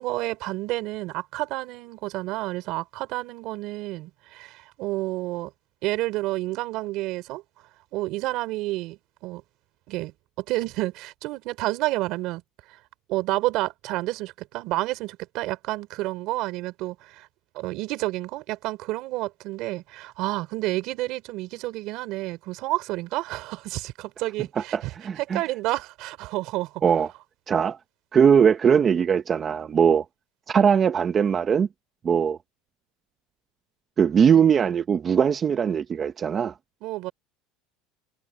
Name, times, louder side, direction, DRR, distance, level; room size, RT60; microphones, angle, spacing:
voice 1, 0.0-5.5 5.8-7.4 7.9-9.4 9.9-10.1 10.4-12.4 13.1-17.3 17.5-26.8 36.8-37.1, right 18 dB, 60° right, 3.4 m, -30 dB
voice 2, 24.6-25.4 26.8-27.1 27.5-27.8 28.1-30.0 30.5-31.7 32.0-32.4 34.0-36.5, right 7 dB, 30° right, 0.9 m, -20 dB
supercardioid pair, 130°, 0 cm